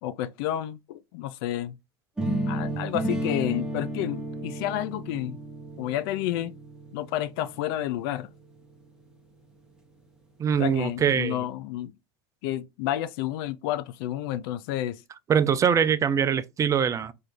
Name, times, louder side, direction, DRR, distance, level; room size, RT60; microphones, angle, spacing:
voice 1, 0.0-1.7 2.5-5.4 5.8-6.6 6.9-8.3 10.6-11.9 12.4-15.0, left 13 dB, 65° left, 0.4 m, -30 dB
sound 1, 2.2-8.1, right 1 dB, 5° right, 0.9 m, -32 dB
voice 2, 10.4-11.4 15.3-17.1, right 7 dB, 25° right, 0.3 m, -23 dB
3.3 x 2.6 x 3.6 m
hypercardioid pair, 100°, 13 cm